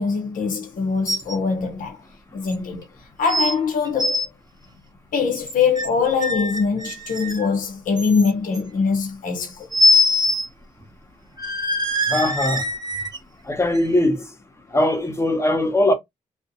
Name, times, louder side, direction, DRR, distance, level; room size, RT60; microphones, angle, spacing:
voice 1, 0.0-2.0 2.3-2.8 3.2-4.3 5.1-9.7, left 5 dB, 70° left, 0.6 m, -23 dB
sound 1, 1.1-1.3 1.7-1.8 2.5-2.6 3.3-3.5 3.8-4.2 5.4-5.9 6.2-7.5 8.0-8.6 9.7-10.5 10.8-10.9 11.4-13.2 13.7-13.8, left 2 dB, 30° right, 0.7 m, -22 dB
voice 2, 12.1-12.6 13.4-14.2 14.7-15.9, left 1 dB, 20° left, 0.8 m, -20 dB
2.5 x 2.0 x 2.6 m
cardioid pair, 65°, 14 cm